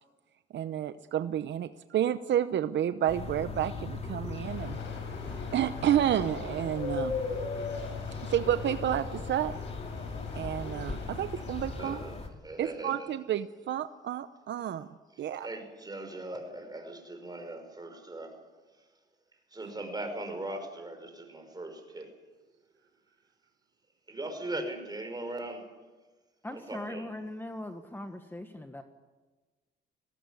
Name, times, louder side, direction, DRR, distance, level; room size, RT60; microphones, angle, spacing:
voice 1, 0.5-4.8 5.5-7.2 8.3-9.6 10.3-12.0 12.6-14.9 15.2-15.5, right 10 dB, 65° right, 12 dB, 0.8 m, -30 dB
sound 1, 3.1-12.3, left 4 dB, 30° left, 3.4 m, -39 dB
sound 2, 4.4-12.0, left 4 dB, 70° left, 5.4 m, -40 dB
voice 2, 11.7-12.2 12.4-13.1 15.4-18.4 19.5-22.1 24.1-25.6 26.5-27.1, right 1 dB, 20° right, 5 dB, 5.6 m, -39 dB
voice 3, 26.4-28.8, left 1 dB, 10° left, 7 dB, 1.4 m, -40 dB
20.0 x 18.0 x 9.7 m, 1.3 s
cardioid pair, 90°, 20 cm